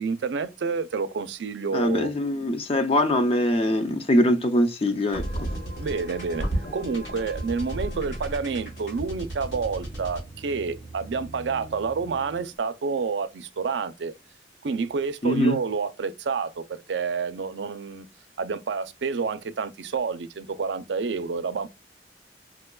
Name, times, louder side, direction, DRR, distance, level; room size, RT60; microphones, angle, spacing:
voice 1, 0.0-2.1 5.8-6.4 6.7-14.1 14.6-18.1 18.4-21.7, right 5 dB, 85° right, 0.5 m, -29 dB
voice 2, 1.7-5.2 15.2-15.6, left 1 dB, 35° left, 0.5 m, -22 dB
sound 1, 5.1-12.5, right 1 dB, 85° left, 1.7 m, -34 dB
4.8 x 2.2 x 2.2 m
head